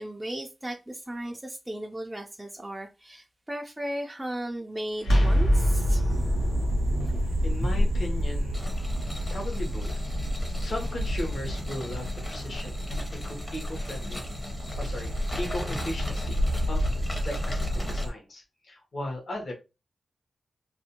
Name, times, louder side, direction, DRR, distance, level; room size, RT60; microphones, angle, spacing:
voice 1, 0.0-6.2, right 1 dB, 10° right, 0.3 m, -36 dB
sound 1, 5.0-10.7, equal, 90° left, 0.8 m, -26 dB
sound 2, 6.1-18.1, equal, 85° right, 0.4 m, -30 dB
voice 2, 7.0-10.1 10.4-14.2 14.8-19.5, left 1 dB, 60° left, 1.0 m, -37 dB
sound 3, 8.5-18.0, left 1 dB, 30° left, 0.7 m, -40 dB
2.5 x 2.1 x 2.8 m
cardioid pair, 75°, 0 cm